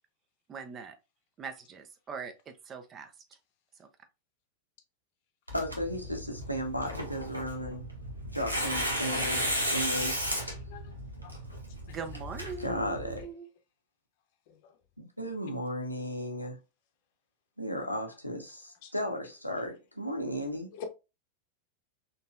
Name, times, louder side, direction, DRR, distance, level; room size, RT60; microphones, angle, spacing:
voice 1, 0.5-1.0 1.4-3.1 3.8-3.9 9.1-9.3 11.9-13.5, right 5 dB, 25° right, 0.5 m, -41 dB
voice 2, 5.5-7.9 8.3-9.4 9.7-10.3 12.6-13.2 15.0-16.6 17.6-20.7, equal, 90° left, 0.7 m, -35 dB
Tearing, 5.5-13.2, equal, 85° right, 0.9 m, -34 dB
voice 3, 10.5-10.9 11.2-11.3 14.5-14.7 18.8-18.9 20.7-20.9, left 6 dB, 50° left, 0.7 m, -45 dB
3.9 x 2.8 x 2.3 m
figure-of-eight pair, 90°, 0 cm